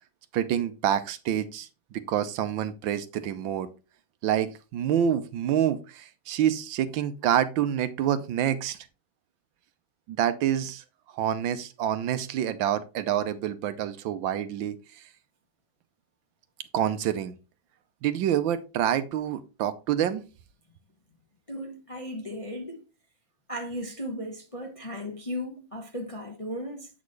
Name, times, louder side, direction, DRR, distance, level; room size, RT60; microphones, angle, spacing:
voice 1, 0.3-3.7 4.2-8.8 10.1-10.8 11.1-14.8 16.7-17.3 18.0-20.2, right 10 dB, 80° right, 1.5 m, -27 dB
voice 2, 21.5-22.8 23.5-26.9, equal, 25° left, 0.7 m, -36 dB
8.3 x 6.3 x 3.2 m
omnidirectional pair, 2.1 m